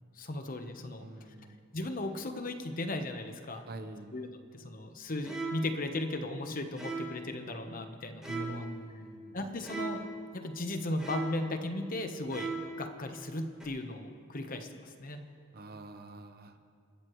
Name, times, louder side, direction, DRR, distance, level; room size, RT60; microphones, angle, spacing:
voice 1, 0.1-1.1 1.7-3.7 4.1-8.7 9.3-10.0 10.3-12.5 12.8-15.2, left 2 dB, 45° left, 6 dB, 1.1 m, -36 dB
voice 2, 1.0-1.6 3.7-4.1 8.3-9.4 15.5-16.6, right 2 dB, 50° right, 8 dB, 0.9 m, -44 dB
sound 1, 5.2-5.8 6.8-7.3 8.2-8.8 9.6-10.2 11.0-11.5 12.3-12.8 13.6-13.7, right 3 dB, 5° right, 3.5 m, -38 dB
29.0 x 13.0 x 3.2 m, 2.2 s
head